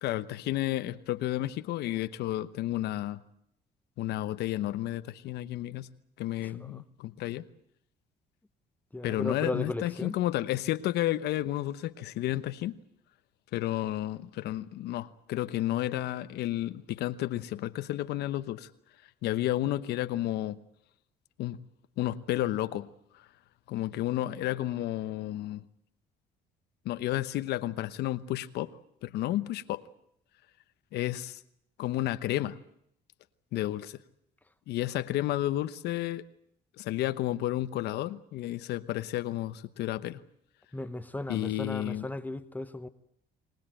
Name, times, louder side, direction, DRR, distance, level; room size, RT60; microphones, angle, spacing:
voice 1, 0.0-3.2 4.0-5.9 6.2-7.4 9.0-12.8 13.5-18.7 19.2-20.6 21.4-21.6 22.0-22.9 23.7-25.6 26.8-28.7 29.0-29.8 30.9-31.4 31.8-32.6 33.5-34.0 34.7-36.3 36.8-40.2 41.3-42.1, left 14 dB, 80° left, 1.0 m, -31 dB
voice 2, 6.4-6.8 8.9-10.2 40.7-42.9, left 2 dB, 10° left, 1.0 m, -36 dB
24.5 x 19.5 x 9.0 m
cardioid pair, 110°, 17 cm